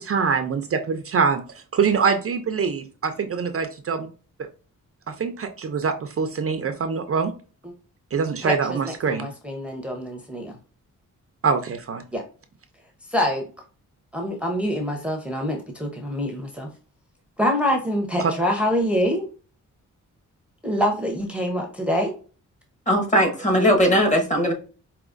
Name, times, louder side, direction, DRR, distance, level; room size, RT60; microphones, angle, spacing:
voice 1, 0.0-1.4 1.7-4.0 5.2-7.3 8.1-9.3 11.4-12.0 18.2-18.3, right 5 dB, 45° right, 7 dB, 0.5 m, -24 dB
voice 2, 8.4-10.6 12.1-12.2 13.1-13.5 14.1-16.7 17.4-19.3 20.6-22.1, equal, 5° right, 1 dB, 0.7 m, -25 dB
voice 3, 22.9-24.5, equal, 25° left, 2 dB, 1.2 m, -19 dB
5.0 x 2.8 x 2.4 m, 0.37 s
wide cardioid pair, 150°, 32 cm